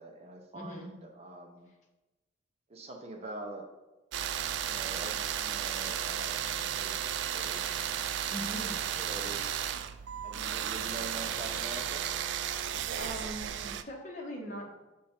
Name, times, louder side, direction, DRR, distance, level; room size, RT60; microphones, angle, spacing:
voice 1, 0.0-1.7 2.7-3.6 4.6-7.8 8.4-9.5 10.2-12.0, right 2 dB, 35° right, 2 dB, 0.8 m, -45 dB
voice 2, 0.5-0.9 8.3-8.8 13.0-14.7, equal, 40° left, -1 dB, 1.2 m, -40 dB
sound 1, 4.1-13.8, right 9 dB, 70° right, 0.3 m, -34 dB
6.5 x 3.6 x 4.4 m, 1.1 s
head